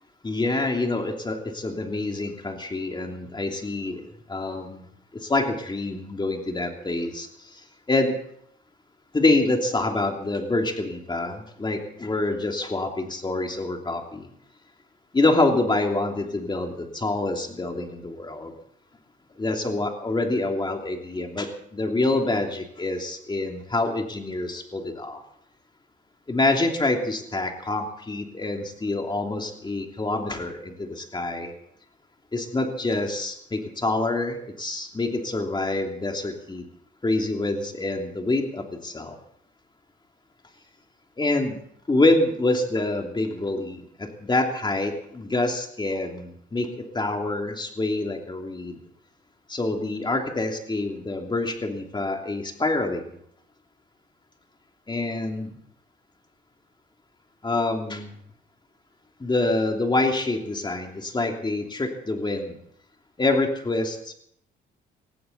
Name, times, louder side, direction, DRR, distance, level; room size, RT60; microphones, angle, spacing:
voice 1, 0.2-4.9 5.2-7.6 7.9-8.1 9.1-14.3 15.1-18.5 19.4-25.2 26.3-31.5 32.3-36.6 37.0-39.2 41.2-41.6 41.9-48.8 49.5-53.0 54.9-55.5 57.4-58.1 59.2-62.5 63.2-64.1, left 2 dB, 20° left, 3 dB, 2.9 m, -26 dB
19.0 x 15.5 x 4.2 m, 0.68 s
cardioid pair, 90°, 20 cm